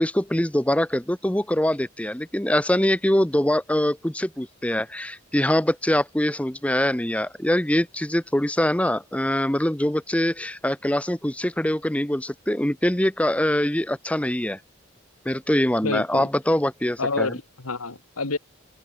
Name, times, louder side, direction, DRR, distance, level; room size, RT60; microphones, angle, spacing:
voice 1, 0.0-14.6 15.2-17.3, left 1 dB, 5° left, 0.7 m, -23 dB
voice 2, 15.8-16.3 17.0-18.4, left 3 dB, 85° left, 2.1 m, -28 dB
open air
head